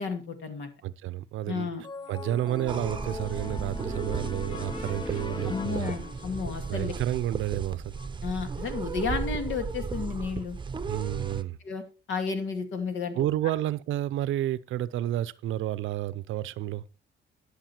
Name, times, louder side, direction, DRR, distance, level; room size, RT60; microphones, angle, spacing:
voice 1, 0.0-0.7 1.5-1.8 5.4-6.9 8.2-10.6 11.6-13.3, left 5 dB, 75° left, 2.4 m, -32 dB
voice 2, 0.8-1.7 2.1-6.0 6.7-7.9 10.9-11.6 13.1-16.8, right 13 dB, 80° right, 0.6 m, -30 dB
sound 1, 1.8-6.5, left 3 dB, 20° left, 0.6 m, -39 dB
sound 2, 2.3-3.1 4.4-8.1, left 2 dB, 40° left, 5.5 m, -46 dB
sound 3, 2.7-11.4, right 5 dB, 25° right, 0.7 m, -35 dB
11.5 x 6.7 x 4.4 m
cardioid pair, 90°, 20 cm